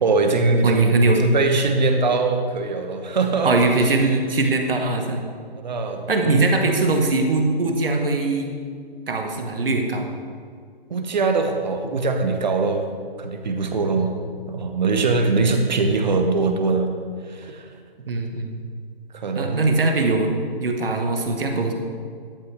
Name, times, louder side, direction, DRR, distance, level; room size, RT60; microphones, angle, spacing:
voice 1, 0.0-3.5 5.6-6.5 10.9-12.9 13.2-14.1 14.5-17.0 17.3-17.7 19.1-19.7, right 3 dB, 45° right, 6 dB, 0.9 m, -22 dB
voice 2, 0.6-1.2 3.4-5.2 6.1-8.5 9.1-10.1 13.9-14.1 18.1-18.6 19.4-20.3 20.6-21.7, right 3 dB, 65° right, 4 dB, 1.4 m, -21 dB
12.0 x 5.6 x 3.4 m, 2.1 s
figure-of-eight pair, 150°, 30 cm